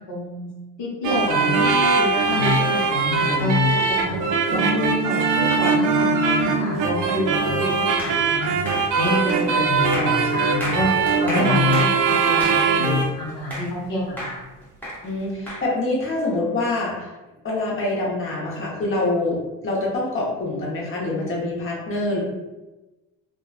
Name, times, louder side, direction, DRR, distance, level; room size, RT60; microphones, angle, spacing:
voice 1, 0.1-0.5 0.8-3.6 3.9-4.2 4.5-8.5 8.9-10.9 11.2-14.4, left 1 dB, 65° left, -4 dB, 0.8 m, -28 dB
sound 1, 1.0-13.1, right 3 dB, 60° right, 0.5 m, -21 dB
sound 2, 8.0-13.9 14.2-15.6, equal, 5° left, 0.9 m, -33 dB
voice 2, 15.0-17.1 17.4-19.4 19.6-22.2, left 2 dB, 35° left, -4 dB, 1.0 m, -25 dB
2.8 x 2.3 x 2.4 m, 1.1 s
cardioid pair, 90°, 36 cm